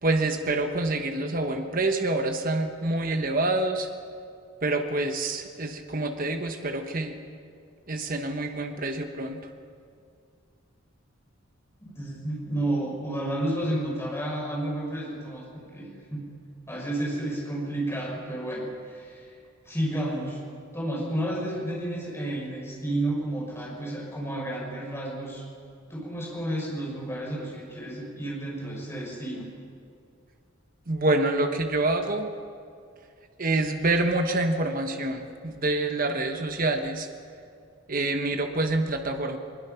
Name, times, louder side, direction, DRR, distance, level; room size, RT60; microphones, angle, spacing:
voice 1, 0.0-3.9 4.6-7.2 7.9-9.4 30.9-32.3 33.4-37.1 37.9-39.4, right 2 dB, 40° right, 5 dB, 1.1 m, -27 dB
voice 2, 11.8-16.3 16.7-19.4 19.6-20.4 20.7-25.4 25.9-29.5, right 1 dB, 10° left, -3 dB, 5.9 m, -31 dB
21.5 x 21.0 x 5.8 m, 2.3 s
head